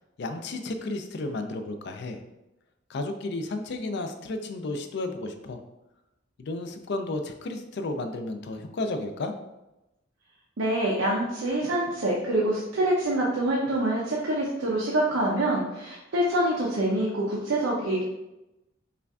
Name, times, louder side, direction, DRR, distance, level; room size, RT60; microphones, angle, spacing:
voice 1, 0.2-2.2 2.9-5.6 6.4-9.3, left 2 dB, 60° left, 7 dB, 0.4 m, -33 dB
voice 2, 10.6-18.0, right 1 dB, 85° right, -4 dB, 0.6 m, -26 dB
5.5 x 2.4 x 2.3 m, 0.95 s
head